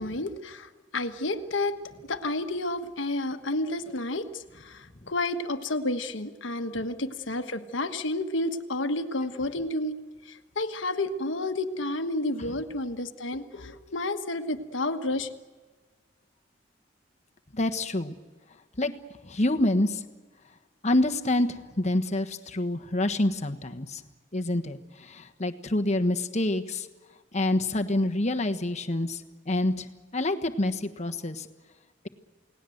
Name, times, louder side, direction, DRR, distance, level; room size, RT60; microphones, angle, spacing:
voice 1, 0.0-1.8 2.1-15.3, left 2 dB, 80° left, 8 dB, 1.4 m, -31 dB
voice 2, 17.5-18.1 18.8-18.9 19.2-20.0 20.8-24.0 24.3-26.9 27.3-29.9 30.1-31.5, left 1 dB, 35° left, 6 dB, 1.3 m, -27 dB
29.0 x 18.5 x 7.9 m, 1.4 s
head